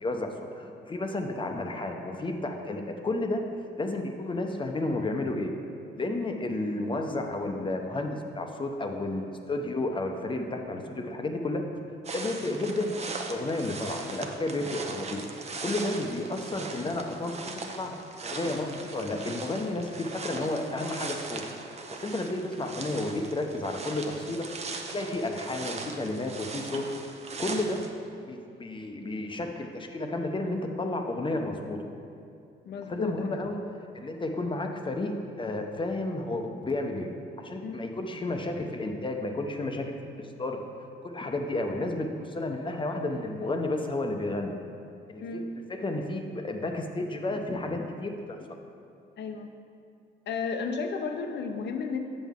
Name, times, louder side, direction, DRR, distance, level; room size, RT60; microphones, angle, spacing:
voice 1, 0.0-3.4 3.8-5.5 5.9-11.6 12.1-13.0 13.3-15.3 15.6-18.0 18.2-21.4 21.9-24.5 24.9-26.9 27.4-27.8 28.3-31.8 32.9-33.6 33.9-40.6 41.0-44.5 45.1-45.4 45.7-48.4, left 2 dB, 25° left, 4 dB, 0.7 m, -32 dB
sound 1, 12.0-27.9, right 3 dB, 35° right, 0.7 m, -39 dB
voice 2, 32.7-33.4 37.6-37.9 45.2-45.4 49.2-49.5 50.3-52.0, left 5 dB, 60° left, 5 dB, 0.7 m, -33 dB
7.4 x 7.0 x 3.6 m, 2.6 s
cardioid pair, 90°, 20 cm